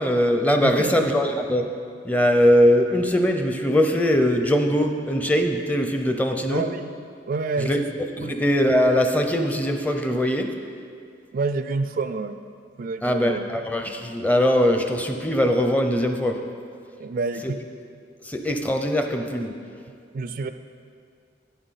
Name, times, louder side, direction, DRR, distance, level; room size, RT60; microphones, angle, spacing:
voice 1, 0.0-1.7 2.0-6.6 7.6-7.8 8.2-10.5 13.0-16.4 17.4-17.5 18.2-19.5, equal, 10° left, 5 dB, 0.6 m, -21 dB
voice 2, 0.6-1.1 6.5-6.9 7.3-7.8 8.2-8.4 11.3-12.4 12.8-13.5 17.0-17.6 20.1-20.5, right 3 dB, 50° right, 10 dB, 0.3 m, -28 dB
11.5 x 8.6 x 4.1 m, 2.3 s
head